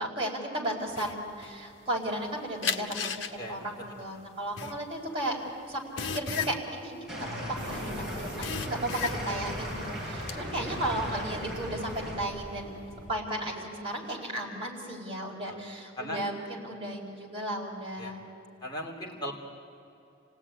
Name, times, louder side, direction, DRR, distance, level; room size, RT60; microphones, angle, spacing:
voice 1, 0.0-5.4 5.7-12.8 13.1-18.2, right 1 dB, 25° right, -3 dB, 4.6 m, -35 dB
sound 1, 0.9-2.3 2.6-7.9 8.2-9.5 9.9-10.4, left 6 dB, 80° left, 1.3 m, -35 dB
voice 2, 3.9-4.2 9.2-9.5 10.2-10.3 15.4-15.6 16.0-16.2 18.0-18.1 18.6-19.3, left 1 dB, 20° left, -2 dB, 3.1 m, -38 dB
sound 2, 7.1-12.2, equal, 5° right, 7.8 m, -37 dB
sound 3, 7.6-13.1, equal, 40° left, 7.2 m, -44 dB
28.0 x 18.0 x 9.9 m, 2.7 s
head